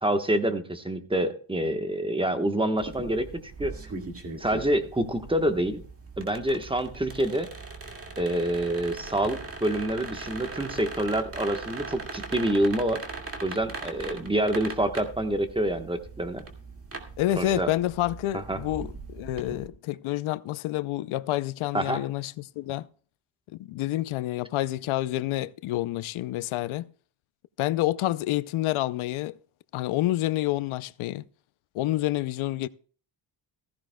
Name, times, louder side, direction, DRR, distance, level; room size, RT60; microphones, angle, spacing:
voice 1, 0.0-3.7 4.4-5.8 6.2-7.5 8.2-13.0 13.4-16.4 17.4-17.7 18.3-18.6 21.7-22.0, right 1 dB, 10° right, 1.1 m, -27 dB
sound 1, 2.8-19.7, right 3 dB, 30° right, 2.0 m, -40 dB
voice 2, 17.2-22.9 23.6-26.9 27.6-29.4 29.7-31.2 31.7-32.7, left 15 dB, 90° left, 0.6 m, -28 dB
15.0 x 15.0 x 2.2 m
cardioid pair, 115°, 48 cm